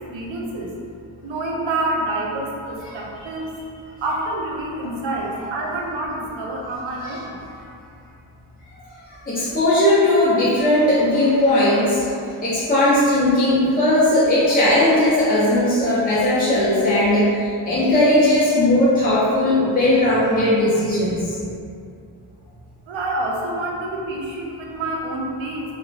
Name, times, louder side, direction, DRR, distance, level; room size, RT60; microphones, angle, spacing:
voice 1, 0.1-0.7 1.2-2.5 2.9-3.5 4.0-7.2 22.9-25.6, right 2 dB, 70° right, -2 dB, 0.7 m, -27 dB
voice 2, 9.3-12.1 12.4-21.4, left 1 dB, 20° left, -10 dB, 0.6 m, -18 dB
3.0 x 2.1 x 2.7 m, 2.5 s
supercardioid pair, 40°, 48 cm